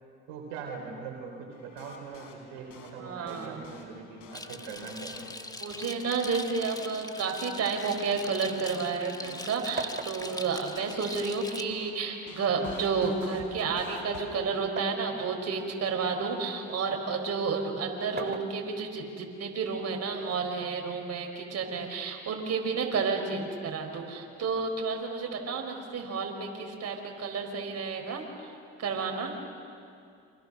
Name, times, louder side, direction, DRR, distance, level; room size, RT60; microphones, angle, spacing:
voice 1, 0.3-5.3, right 5 dB, 90° right, 1 dB, 3.6 m, -41 dB
sound 1, 1.5-14.2, left 4 dB, 70° left, 4.4 m, -49 dB
voice 2, 3.0-3.7 5.6-28.5 28.8-29.3, right 5 dB, 55° right, 3 dB, 5.0 m, -31 dB
sound 2, 4.3-11.6, left 1 dB, 10° left, 1.8 m, -42 dB
sound 3, 8.1-9.4 9.8-11.7 12.6-15.1 15.6-16.9 17.9-19.1 20.2-21.2, right 4 dB, 30° right, 2.5 m, -42 dB
28.5 x 26.5 x 6.6 m, 2.4 s
supercardioid pair, 65°, 31 cm